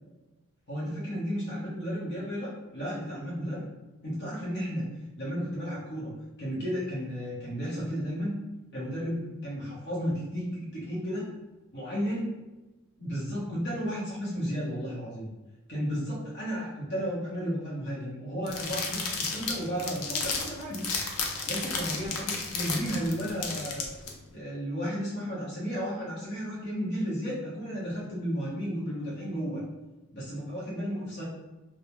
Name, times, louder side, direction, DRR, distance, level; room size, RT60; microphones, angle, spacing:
voice 1, 0.7-3.6 4.0-4.9 5.2-6.1 6.4-8.3 8.7-11.3 11.7-12.3 13.0-15.3 15.7-20.9 21.5-23.8 24.3-29.6 30.1-31.2, equal, 55° left, -7 dB, 0.8 m, -33 dB
sound 1, 18.5-24.1, left 4 dB, 80° left, 0.5 m, -33 dB
2.3 x 2.0 x 2.9 m, 1.1 s
head